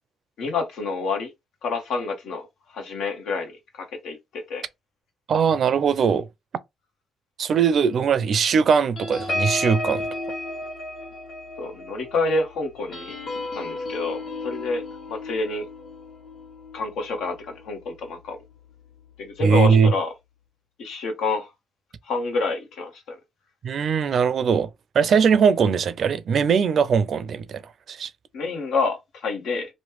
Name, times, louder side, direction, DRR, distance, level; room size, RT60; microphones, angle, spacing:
voice 1, 0.4-1.3 1.6-4.6 11.6-13.2 13.5-15.7 16.7-18.4 19.2-20.1 20.8-21.5 22.0-23.2 28.3-29.7, left 3 dB, 80° left, 1.0 m, -28 dB
voice 2, 5.3-6.3 7.4-10.1 19.4-19.9 23.6-24.7 24.9-28.1, right 6 dB, 55° right, 0.4 m, -20 dB
sound 1, 9.0-17.9 18.3-18.5 18.8-19.1, left 2 dB, 60° left, 1.2 m, -33 dB
3.1 x 2.2 x 3.0 m
cardioid pair, 90°, 0 cm